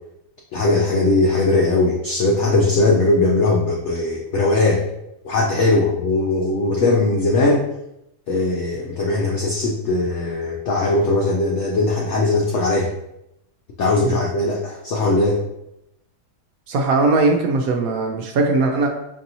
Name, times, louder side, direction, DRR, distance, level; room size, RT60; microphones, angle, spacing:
voice 1, 0.5-4.8 5.2-7.7 8.3-12.9 13.8-15.4, left 2 dB, 80° left, 1 dB, 0.6 m, -19 dB
voice 2, 16.7-18.9, right 3 dB, 70° right, 2 dB, 0.9 m, -19 dB
5.2 x 2.7 x 2.7 m, 0.84 s
omnidirectional pair, 1.8 m